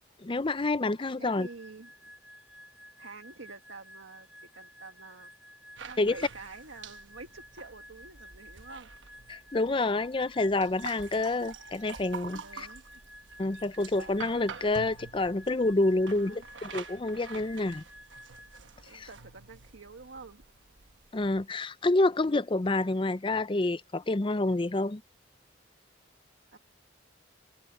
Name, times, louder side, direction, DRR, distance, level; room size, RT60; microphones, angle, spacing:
voice 1, 0.2-1.5 6.0-6.1 9.3-12.7 13.4-17.8 18.9-19.1 21.1-25.0, left 2 dB, 25° left, 0.5 m, -28 dB
voice 2, 1.2-1.9 3.0-4.3 4.5-5.5 5.8-8.9 12.4-12.8 16.0-16.5 18.9-20.4 26.5-26.6, right 3 dB, 90° right, 1.9 m, -48 dB
sound 1, 1.3-18.6, equal, 5° right, 4.6 m, -53 dB
sound 2, 5.8-21.4, right 5 dB, 75° right, 1.2 m, -47 dB
head